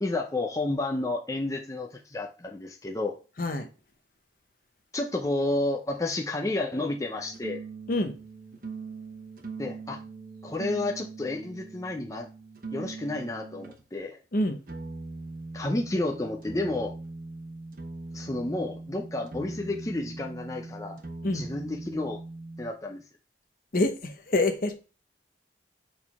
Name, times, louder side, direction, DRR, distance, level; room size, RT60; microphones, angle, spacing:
voice 1, 0.0-3.2 4.9-7.6 9.6-10.0 10.4-12.3 12.7-14.2 15.5-16.9 18.1-21.0 21.3-22.2 22.6-23.0, left 2 dB, 20° left, 0.6 m, -31 dB
sound 1, 7.2-13.8 14.7-22.7, right 3 dB, 50° right, 1.0 m, -41 dB
voice 2, 23.7-24.7, left 2 dB, 50° left, 0.8 m, -26 dB
6.8 x 3.9 x 3.6 m
head